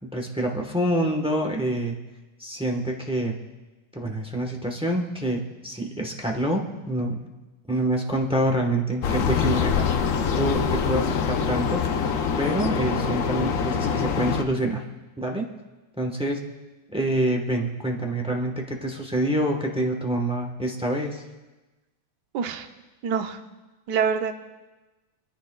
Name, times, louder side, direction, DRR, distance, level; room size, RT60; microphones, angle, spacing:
voice 1, 0.0-2.0 2.4-3.3 3.9-7.2 7.7-9.9 10.4-11.8 12.4-14.8 15.2-15.4 16.0-16.4 16.9-21.2, right 1 dB, 5° right, 1 dB, 0.6 m, -26 dB
sound 1, 9.0-14.4, left 7 dB, 65° left, 0.8 m, -24 dB
voice 2, 22.3-22.7 23.0-23.4 23.9-24.3, right 6 dB, 65° right, 6 dB, 1.3 m, -25 dB
27.0 x 9.9 x 2.3 m, 1.1 s
omnidirectional pair, 2.1 m